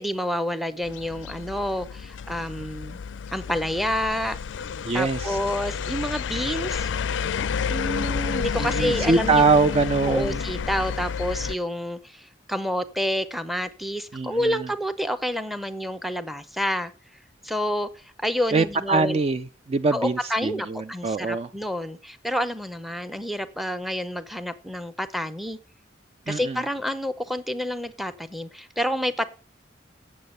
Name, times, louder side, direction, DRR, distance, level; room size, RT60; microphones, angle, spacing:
voice 1, 0.0-3.0 3.3-4.4 4.9-6.9 7.7-9.5 10.1-16.9 17.4-19.2 19.9-25.6 26.3-29.3, equal, ahead, 0.7 m, -28 dB
sound 1, 0.8-11.6, left 6 dB, 80° left, 0.4 m, -30 dB
voice 2, 4.8-5.4 8.6-10.4 14.1-14.7 18.5-21.5 26.3-26.6, right 4 dB, 35° right, 0.4 m, -23 dB
8.5 x 7.2 x 6.5 m
head